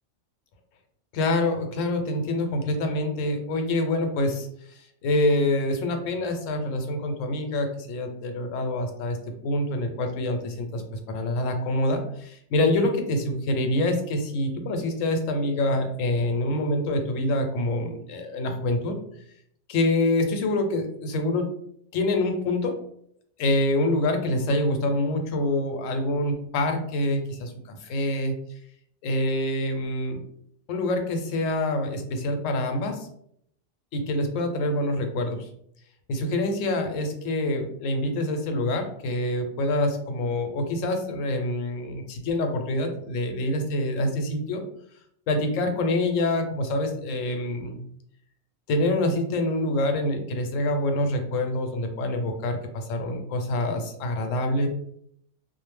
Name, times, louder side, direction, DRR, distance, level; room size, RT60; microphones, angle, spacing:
voice 1, 1.1-9.2 9.4-10.8 11.1-18.9 19.7-21.4 21.9-22.8 23.4-28.3 29.0-30.2 30.7-33.1 33.9-35.5 36.1-44.6 45.3-47.8 48.7-54.7, left 1 dB, 80° left, 5 dB, 0.9 m, -26 dB
2.4 x 2.0 x 3.1 m, 0.69 s
omnidirectional pair, 1.3 m